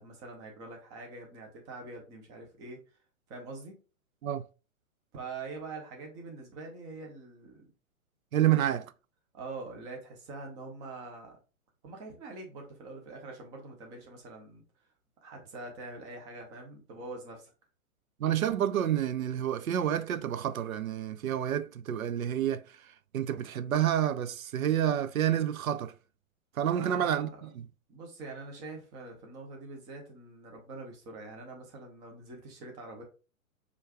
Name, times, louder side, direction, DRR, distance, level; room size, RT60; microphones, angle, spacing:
voice 1, 0.0-2.8 3.3-3.8 5.1-7.7 8.5-8.6 9.3-11.3 11.8-14.6 15.2-17.5 26.7-27.4 27.9-33.0, right 3 dB, 10° right, 0.4 m, -44 dB
voice 2, 8.3-8.9 18.2-25.9 26.6-27.3 27.6-27.7, right 10 dB, 80° right, 0.5 m, -29 dB
5.0 x 2.3 x 3.3 m
figure-of-eight pair, 115°, 41 cm